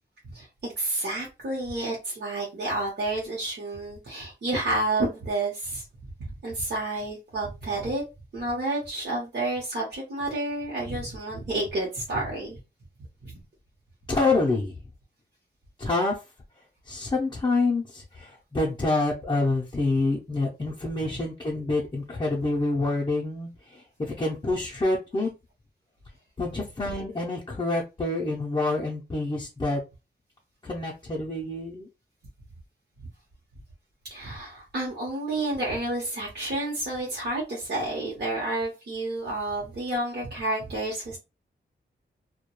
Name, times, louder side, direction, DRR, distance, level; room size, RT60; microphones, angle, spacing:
voice 1, 0.3-5.8 6.2-8.0 8.3-12.6 13.2-13.4 34.1-41.2, right 2 dB, 60° right, -4 dB, 0.9 m, -30 dB
voice 2, 14.1-14.8 15.8-16.2 16.9-25.3 26.4-29.8 30.6-31.9, left 2 dB, 25° left, -4 dB, 0.5 m, -27 dB
2.2 x 2.1 x 2.9 m, 0.28 s
wide cardioid pair, 115°, 19 cm